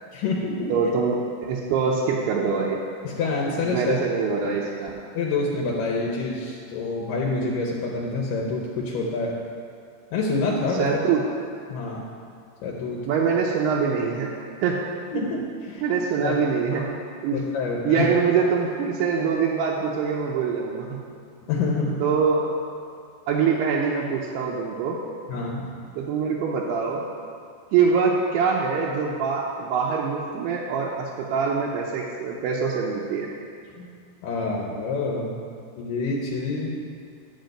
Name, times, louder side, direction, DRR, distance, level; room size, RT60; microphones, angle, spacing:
voice 1, 0.1-0.7 3.0-3.9 5.1-9.4 10.1-10.9 11.7-12.1 12.6-13.0 15.1-15.8 16.2-16.3 16.7-16.9 17.3-18.1 21.5-22.0 25.3-25.8 33.8-33.9 34.2-35.4 35.8-36.8, left 3 dB, 75° left, -2 dB, 2.1 m, -27 dB
voice 2, 0.7-2.8 3.6-4.9 10.8-11.3 13.1-14.8 15.8-16.9 17.2-17.4 17.8-21.0 22.0-22.6 23.3-25.0 26.0-27.0 27.7-33.3, right 5 dB, 85° right, -3 dB, 2.8 m, -24 dB
10.5 x 5.0 x 7.8 m, 2.3 s
omnidirectional pair, 4.7 m